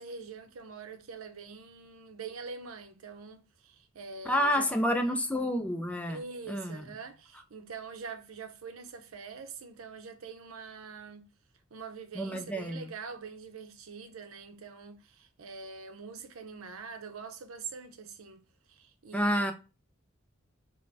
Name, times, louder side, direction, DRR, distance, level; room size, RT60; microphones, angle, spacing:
voice 1, 0.0-5.2 6.1-11.3 11.7-18.4 18.7-19.5, right 5 dB, 85° right, 0.6 m, -44 dB
voice 2, 4.3-6.2 6.5-6.9 12.1-12.9 19.1-19.5, equal, 5° left, 0.4 m, -29 dB
5.1 x 2.1 x 2.6 m
head